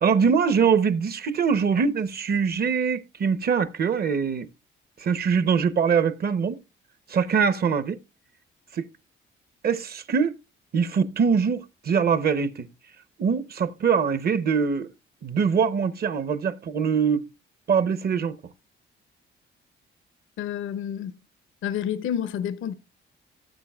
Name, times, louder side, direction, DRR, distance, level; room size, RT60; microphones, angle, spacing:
voice 1, 0.0-4.5 5.0-6.6 7.1-8.0 8.7-8.9 9.6-10.3 10.7-12.7 13.2-14.9 15.2-17.2 17.7-18.4, right 6 dB, 50° right, 0.9 m, -23 dB
voice 2, 20.4-21.1 21.6-22.7, left 9 dB, 85° left, 0.8 m, -29 dB
17.0 x 7.2 x 2.3 m
cardioid pair, 90°, 20 cm